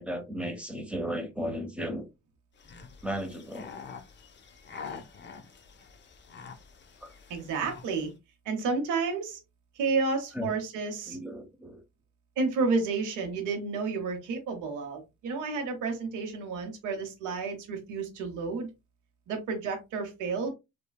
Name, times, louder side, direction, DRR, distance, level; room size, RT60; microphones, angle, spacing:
voice 1, 0.0-2.0 3.0-3.7 7.0-7.1 10.3-10.5 11.1-11.8, equal, 5° right, 0.9 m, -35 dB
sound 1, 2.6-8.1, left 5 dB, 35° left, 0.6 m, -46 dB
voice 2, 7.3-8.1 8.5-9.4 9.7-11.2 12.4-18.7 19.3-20.5, right 4 dB, 85° right, 0.8 m, -31 dB
3.2 x 2.2 x 2.2 m
cardioid pair, 90°, 30 cm